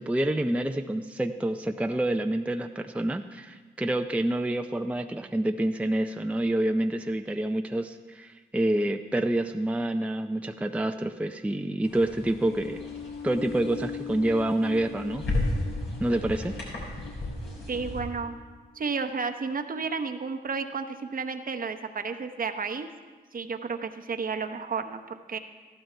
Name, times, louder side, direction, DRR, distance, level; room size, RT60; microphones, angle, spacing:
voice 1, 0.0-12.8 13.2-15.3 16.0-16.6, right 1 dB, 5° right, 6 dB, 0.5 m, -27 dB
sound 1, 11.8-18.0, left 2 dB, 75° left, 4.0 m, -34 dB
sound 2, 12.4-18.8, left 6 dB, 90° left, 0.7 m, -41 dB
voice 2, 17.7-18.4 18.7-22.9 23.3-25.4, right 5 dB, 50° right, 6 dB, 0.8 m, -32 dB
14.0 x 12.0 x 3.3 m, 1.4 s
cardioid pair, 50°, 19 cm